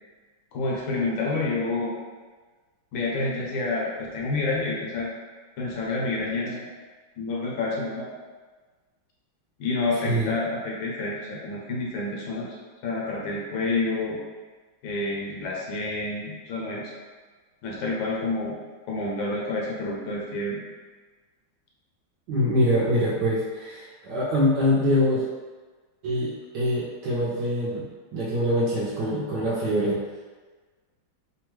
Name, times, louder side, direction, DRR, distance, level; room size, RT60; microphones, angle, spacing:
voice 1, 0.5-1.9 2.9-5.1 5.6-6.7 7.2-8.1 9.6-12.5 12.8-14.2 14.8-16.9 17.6-18.5 18.9-20.6, left 2 dB, 75° left, -3 dB, 1.4 m, -28 dB
voice 2, 22.3-25.2 26.0-27.8 28.1-30.0, equal, 75° right, -7 dB, 1.0 m, -24 dB
3.4 x 2.1 x 3.0 m, 1.4 s
omnidirectional pair, 2.3 m